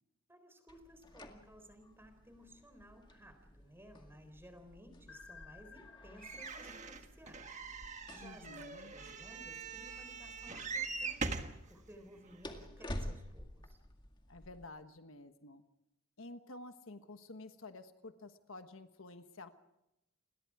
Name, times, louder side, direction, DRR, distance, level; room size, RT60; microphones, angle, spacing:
voice 1, 0.3-7.6 8.1-11.4 11.7-13.8, equal, 10° right, 8 dB, 3.9 m, -57 dB
sound 1, 0.7-14.6, left 1 dB, 20° left, 2.0 m, -51 dB
sound 2, 5.1-8.0, left 5 dB, 90° left, 1.5 m, -58 dB
sound 3, 6.2-11.6 12.3-12.4 12.6-12.7, right 4 dB, 30° right, 1.5 m, -42 dB
voice 2, 8.2-8.9 14.3-15.6 16.2-19.5, left 2 dB, 65° left, 8 dB, 1.3 m, -51 dB
29.5 x 22.0 x 4.9 m, 0.87 s
head